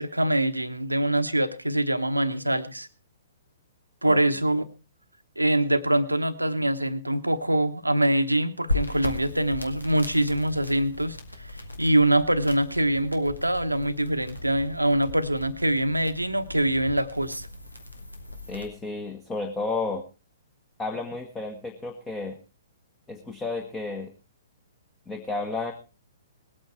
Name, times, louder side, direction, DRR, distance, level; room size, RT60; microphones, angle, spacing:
voice 1, 0.0-2.9 4.0-4.6 5.4-11.5 11.8-17.5, right 1 dB, 85° right, 11 dB, 1.1 m, -24 dB
sound 1, 8.7-18.7, left 2 dB, 85° left, 2.1 m, -37 dB
voice 2, 18.5-20.0 20.8-22.4 23.1-24.1 25.1-25.7, left 3 dB, 15° left, 3 dB, 1.6 m, -32 dB
20.0 x 8.9 x 4.5 m, 0.31 s
figure-of-eight pair, 120°, 0 cm